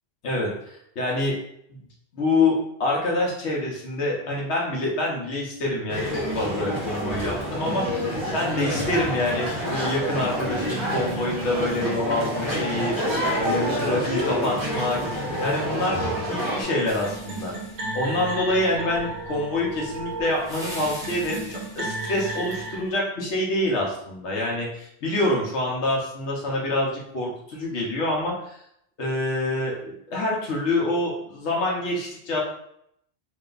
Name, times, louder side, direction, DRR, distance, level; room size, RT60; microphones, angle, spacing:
voice 1, 0.2-1.3 2.1-13.0 13.3-15.0 15.4-17.5 17.9-28.6 29.0-32.4, left 1 dB, 85° left, -2 dB, 1.2 m, -26 dB
sound 1, 5.9-16.6, equal, 25° right, 1.5 m, -28 dB
sound 2, 14.8-22.8, right 2 dB, 50° right, 0.7 m, -35 dB
sound 3, 16.9-22.9, equal, 5° right, 0.9 m, -43 dB
3.3 x 2.8 x 3.8 m, 0.73 s
omnidirectional pair, 1.1 m